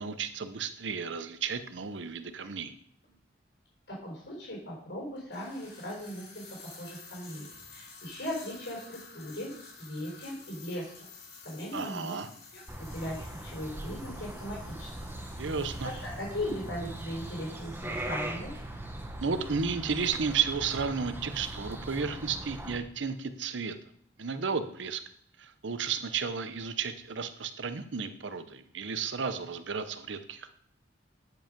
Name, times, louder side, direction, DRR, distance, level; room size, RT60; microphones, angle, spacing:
voice 1, 0.0-2.7 11.7-12.3 15.4-15.9 19.2-23.7 24.2-25.0 25.4-30.5, right 5 dB, 75° right, 11 dB, 0.7 m, -33 dB
sound 1, 2.0-2.1 3.0-3.1 5.2-19.3, left 4 dB, 60° left, 3.1 m, -52 dB
voice 2, 3.9-11.1 11.4-12.2 12.5-14.9 15.4-15.5 15.8-18.5, left 1 dB, 75° left, -4 dB, 3.9 m, -38 dB
sound 2, 12.7-22.8, right 1 dB, 10° right, 0.8 m, -40 dB
9.4 x 5.3 x 5.2 m, 0.65 s
head